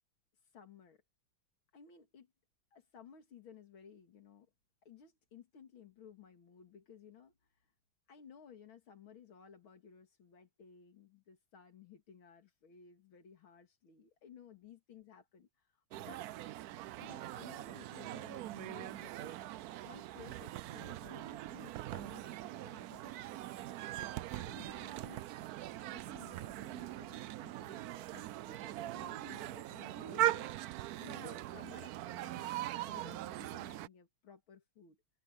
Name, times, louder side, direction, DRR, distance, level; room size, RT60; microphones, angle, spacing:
voice 1, 0.4-1.0 1.7-2.3 2.7-4.5 4.8-7.7 8.1-16.3 17.0-19.5 19.8-23.5 24.0-25.3 25.9-30.5 31.0-35.0, left 7 dB, 85° left, 2.9 m, -57 dB
sound 1, 15.9-33.9, right 15 dB, 85° right, 0.8 m, -41 dB
omnidirectional pair, 2.2 m